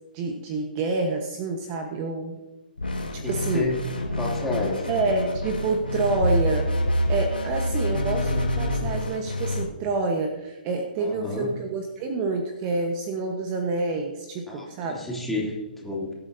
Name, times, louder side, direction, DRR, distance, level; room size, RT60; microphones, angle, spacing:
voice 1, 0.1-2.3 3.1-3.7 4.9-6.7 7.1-15.1, right 3 dB, 30° right, 4 dB, 1.2 m, -28 dB
sound 1, 2.8-9.6, left 1 dB, 85° left, 4.1 m, -27 dB
voice 2, 3.2-3.9 4.1-4.9 11.0-11.5 14.5-16.1, left 2 dB, 5° left, -5 dB, 2.9 m, -30 dB
21.0 x 8.5 x 2.8 m, 1.1 s
figure-of-eight pair, 130°, 5 cm